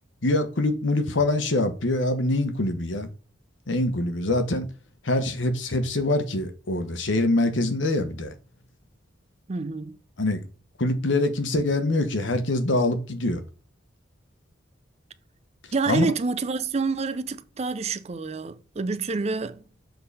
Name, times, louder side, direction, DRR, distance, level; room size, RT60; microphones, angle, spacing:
voice 1, 0.2-3.1 3.7-4.7 5.0-8.3 10.2-10.4 10.8-13.4 15.9-16.1, left 2 dB, 80° left, 1.1 m, -24 dB
voice 2, 9.5-10.0 15.7-19.6, right 4 dB, 35° right, 0.5 m, -28 dB
7.1 x 3.9 x 4.1 m
head